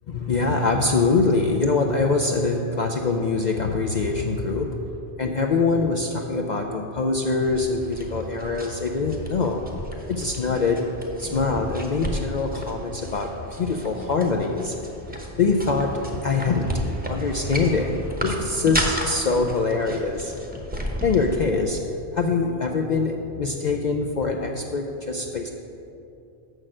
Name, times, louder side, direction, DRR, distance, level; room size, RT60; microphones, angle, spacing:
voice 1, 0.1-4.9 5.2-9.6 10.1-10.9 11.2-14.8 15.4-20.3 21.0-25.5, left 4 dB, 55° left, 2 dB, 0.5 m, -24 dB
sound 1, 7.4-21.4, equal, 10° right, 0.8 m, -33 dB
6.5 x 6.4 x 7.4 m, 2.8 s
omnidirectional pair, 1.2 m